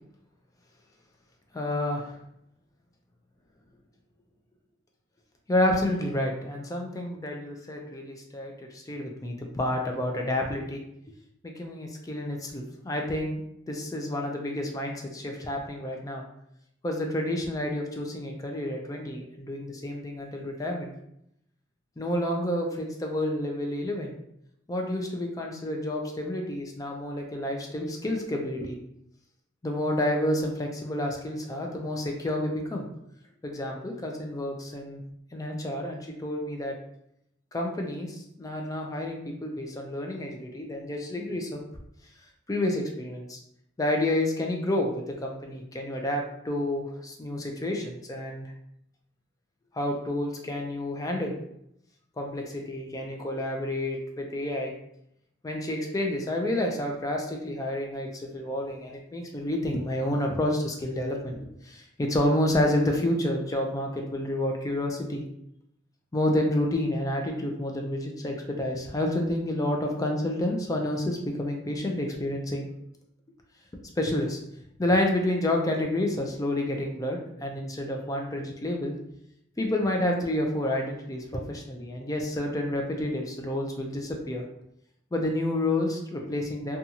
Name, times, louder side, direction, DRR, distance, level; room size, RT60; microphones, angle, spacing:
voice 1, 1.5-2.2 5.5-10.8 11.4-13.4 13.7-16.2 16.8-20.9 22.0-24.2 24.7-28.8 29.6-32.9 33.4-35.0 35.3-36.8 37.5-41.6 42.5-43.4 43.8-48.5 49.7-51.4 52.2-54.7 55.4-61.4 61.6-65.2 66.1-72.7 74.0-74.4 74.8-78.9 79.6-84.4 85.1-86.8, left 1 dB, 20° left, 1 dB, 0.4 m, -29 dB
2.6 x 2.3 x 2.8 m, 0.77 s
head